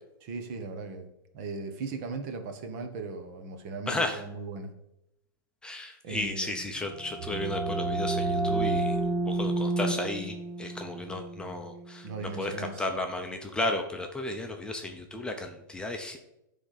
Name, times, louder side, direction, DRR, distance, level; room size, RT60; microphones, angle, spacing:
voice 1, 0.2-1.1 1.3-4.7 6.0-6.7 12.0-12.9, right 4 dB, 50° right, 6 dB, 1.4 m, -38 dB
voice 2, 3.9-4.2 5.6-9.0 9.3-16.2, left 2 dB, 10° left, 3 dB, 0.7 m, -34 dB
sound 1, 6.8-12.4, right 2 dB, 35° right, 1.0 m, -30 dB
9.7 x 3.6 x 6.6 m, 0.87 s
hypercardioid pair, 140°, 11 cm